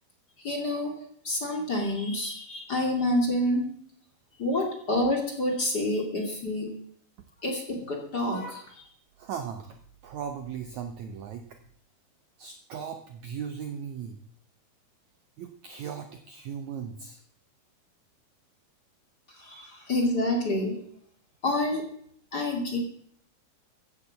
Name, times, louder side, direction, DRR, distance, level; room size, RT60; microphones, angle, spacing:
voice 1, 0.4-1.0 1.2-3.6 4.4-6.7 7.4-8.9 19.3-20.7 21.4-21.8 22.3-22.8, left 1 dB, 30° left, 1 dB, 2.5 m, -28 dB
voice 2, 9.2-9.8 10.0-11.6 12.4-14.2 15.4-17.2, right 7 dB, 85° right, 7 dB, 1.6 m, -37 dB
15.0 x 8.1 x 7.4 m, 0.64 s
omnidirectional pair, 4.8 m